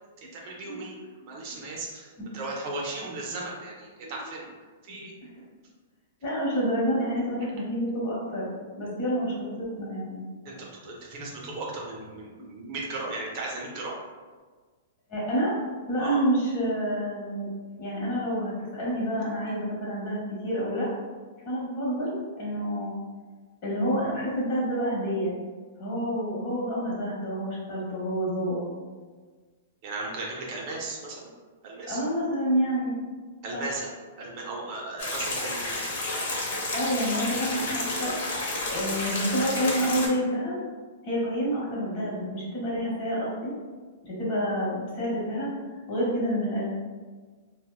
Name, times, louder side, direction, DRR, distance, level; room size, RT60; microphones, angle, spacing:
voice 1, 0.3-0.9 1.3-4.5 4.8-5.1 10.4-14.0 16.0-16.2 29.8-31.3 31.6-32.0 33.4-33.9 34.2-35.7, right 2 dB, 40° right, -2 dB, 0.5 m, -36 dB
voice 2, 6.2-8.5 8.8-10.2 15.1-15.6 15.9-17.5 17.8-20.9 21.5-23.0 23.6-25.3 25.8-28.6 31.9-32.9 33.5-33.6 36.7-38.2 38.7-40.6 41.0-43.5 44.0-45.5 45.9-46.7, equal, 40° left, -6 dB, 1.0 m, -28 dB
sound 1, 35.0-40.1, left 2 dB, 70° left, 0.7 m, -31 dB
2.8 x 2.0 x 2.2 m, 1.4 s
hypercardioid pair, 160°, 0 cm